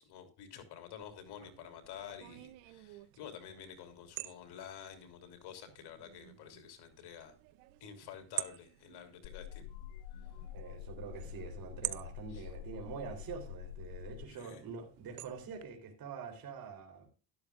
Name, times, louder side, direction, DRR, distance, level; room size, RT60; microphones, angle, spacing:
voice 1, 0.0-7.4 7.8-9.7 10.2-10.3 12.3-12.5 14.3-14.6, left 9 dB, 65° left, 3.2 m, -50 dB
sound 1, 1.0-15.6, right 20 dB, 90° right, 0.8 m, -48 dB
sound 2, 9.2-14.2, left 11 dB, 90° left, 0.6 m, -46 dB
voice 2, 10.5-17.1, right 6 dB, 55° right, 3.6 m, -45 dB
12.5 x 12.0 x 2.4 m
supercardioid pair, 100°, 42 cm